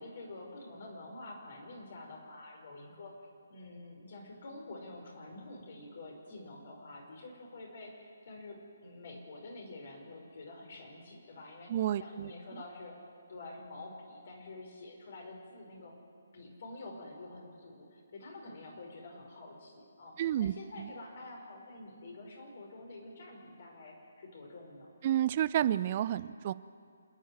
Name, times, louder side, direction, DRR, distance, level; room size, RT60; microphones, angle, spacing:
voice 1, 0.0-3.1 3.5-11.7 12.0-13.0 13.3-16.0 16.3-24.9, left 2 dB, 50° left, 0 dB, 5.4 m, -48 dB
voice 2, 11.7-12.3 20.2-20.9 25.0-26.5, right 11 dB, 35° right, 17 dB, 0.5 m, -30 dB
27.5 x 10.5 x 9.7 m, 2.3 s
figure-of-eight pair, 140°, 0 cm